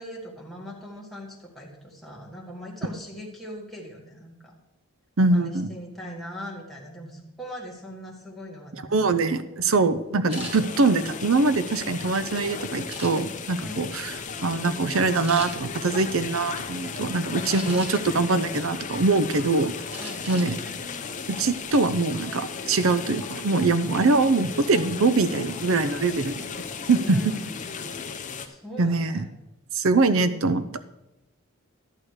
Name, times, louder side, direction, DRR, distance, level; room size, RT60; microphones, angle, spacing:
voice 1, 0.0-4.6 5.3-9.1 9.4-9.8 13.6-14.0 20.0-20.7 27.0-27.7 28.4-29.3, left 1 dB, ahead, -3 dB, 1.7 m, -40 dB
voice 2, 5.2-5.7 8.9-14.2 14.4-19.7 20.3-20.6 21.3-26.6 26.9-27.2 28.8-29.3 29.7-30.6, right 3 dB, 65° right, 13 dB, 0.6 m, -23 dB
sound 1, 10.3-28.5, left 5 dB, 35° left, 0.7 m, -35 dB
sound 2, 10.3-10.5 11.2-12.2 12.9-13.5 14.0-14.2 14.6-14.7 15.2-15.5 17.4-18.1 18.6-19.4 19.9-20.5 20.9-21.0 21.5-21.8, equal, 25° right, 2.0 m, -39 dB
11.5 x 8.7 x 4.7 m, 0.94 s
head